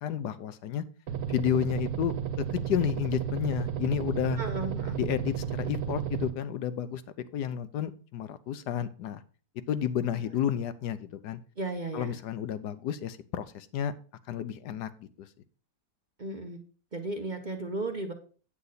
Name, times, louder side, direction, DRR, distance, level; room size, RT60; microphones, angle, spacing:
voice 1, 0.0-0.8 1.3-4.4 5.0-7.0 7.3-9.2 9.7-11.4 11.9-13.9 14.3-15.3, left 9 dB, 80° left, 13 dB, 1.3 m, -31 dB
sound 1, 1.1-6.3, right 8 dB, 75° right, 1.5 m, -33 dB
voice 2, 4.4-5.0 10.1-10.2 11.6-12.1 16.2-16.6 16.9-18.1, right 2 dB, 35° right, 5 dB, 0.9 m, -35 dB
8.6 x 8.0 x 4.0 m, 0.38 s
omnidirectional pair, 1.8 m